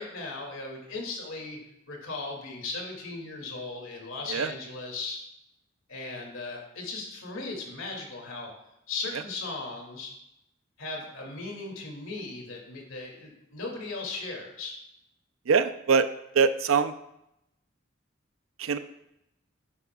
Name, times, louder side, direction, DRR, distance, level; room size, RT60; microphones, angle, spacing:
voice 1, 0.0-1.6 1.9-5.2 5.9-8.5 8.9-10.1 10.8-14.8, left 3 dB, 80° left, 0 dB, 2.5 m, -37 dB
voice 2, 15.5-16.1 16.3-16.9 18.6-18.8, right 6 dB, 85° right, 11 dB, 0.6 m, -23 dB
10.5 x 9.9 x 2.4 m, 0.84 s
head